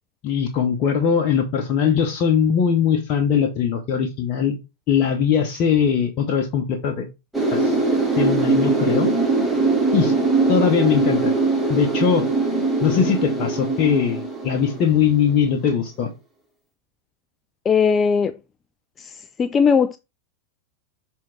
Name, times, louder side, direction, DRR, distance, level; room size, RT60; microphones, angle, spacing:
voice 1, 0.2-4.6 4.9-7.1 7.5-7.8 8.2-9.1 9.9-10.1 10.5-11.3 11.7-12.3 12.8-16.1, left 7 dB, 35° left, 1.0 m, -20 dB
sound 1, 7.3-15.3 15.6-15.7, right 3 dB, 5° right, 1.8 m, -21 dB
voice 2, 17.7-18.3 19.4-20.0, left 6 dB, 20° left, 0.4 m, -17 dB
6.2 x 3.6 x 4.5 m
figure-of-eight pair, 90°, 0 cm